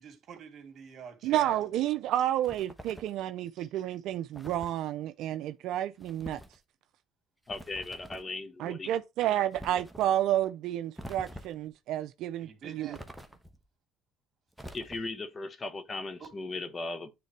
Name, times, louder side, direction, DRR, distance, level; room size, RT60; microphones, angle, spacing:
voice 1, 0.0-1.5 3.5-3.7 12.4-13.1 16.2-16.3, right 7 dB, 50° right, 2.5 m, -46 dB
voice 2, 1.2-6.4 8.6-13.0, right 12 dB, 70° right, 0.4 m, -30 dB
sound 1, 2.4-3.2 4.3-4.8 6.0-6.6 7.5-8.3 9.5-10.1 11.0-11.7 12.9-13.6 14.5-15.3, equal, ahead, 1.1 m, -46 dB
voice 3, 7.5-8.9 14.7-17.1, left 3 dB, 30° left, 1.1 m, -37 dB
9.5 x 3.7 x 3.2 m
supercardioid pair, 95°, 0 cm